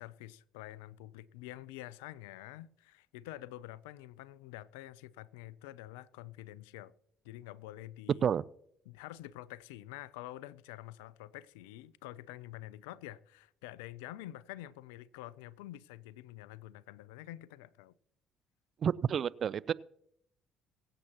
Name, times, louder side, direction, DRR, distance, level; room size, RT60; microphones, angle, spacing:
voice 1, 0.0-6.9 7.2-8.2 8.9-17.9, left 15 dB, 80° left, 0.4 m, -47 dB
voice 2, 18.8-19.7, right 8 dB, 50° right, 0.4 m, -30 dB
22.5 x 7.7 x 2.9 m
hypercardioid pair, 55°, 0 cm